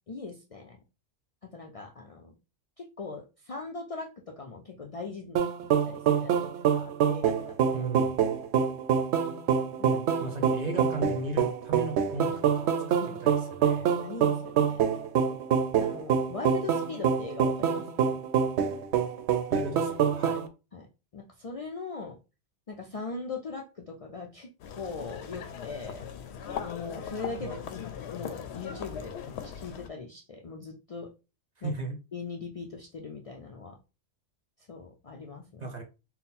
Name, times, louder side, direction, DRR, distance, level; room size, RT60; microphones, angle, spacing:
voice 1, 0.1-0.8 1.5-2.3 2.8-6.4 6.7-7.6 9.9-10.3 13.0-13.2 14.0-14.9 15.8-18.2 20.7-20.9 21.1-22.2 22.7-26.1 26.6-31.1 31.6-31.7 32.1-33.8 34.7-35.6, left 4 dB, 45° left, 1 dB, 0.4 m, -40 dB
sound 1, 5.4-20.5, right 7 dB, 85° right, 0.9 m, -26 dB
voice 2, 7.7-8.2 9.8-13.9 19.5-20.4 27.4-27.5 31.6-32.0 35.6-35.8, right 2 dB, 45° right, 3 dB, 0.8 m, -36 dB
sound 2, 24.6-29.9, left 8 dB, 80° left, 0.9 m, -39 dB
3.8 x 2.1 x 4.1 m, 0.29 s
omnidirectional pair, 1.1 m